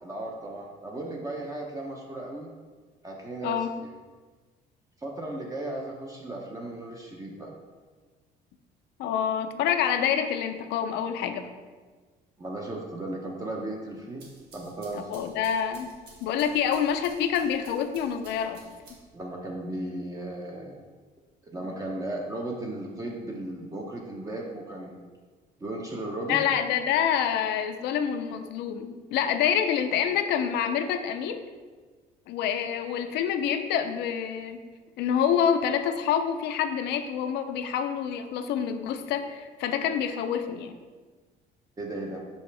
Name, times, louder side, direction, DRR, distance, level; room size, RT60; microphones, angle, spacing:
voice 1, 0.0-2.5 3.0-3.9 5.0-7.6 12.4-14.3 14.5-15.2 19.1-20.8 21.5-25.0 25.6-26.5 41.8-42.2, right 1 dB, 20° right, -1 dB, 0.7 m, -36 dB
voice 2, 9.0-11.5 15.1-15.9 16.2-18.6 26.3-31.4 32.3-34.6 35.0-40.7, left 8 dB, 80° left, 8 dB, 0.5 m, -27 dB
sound 1, 14.0-19.3, right 2 dB, 80° right, 1.9 m, -53 dB
5.9 x 5.4 x 3.3 m, 1.4 s
cardioid pair, 110°, 17 cm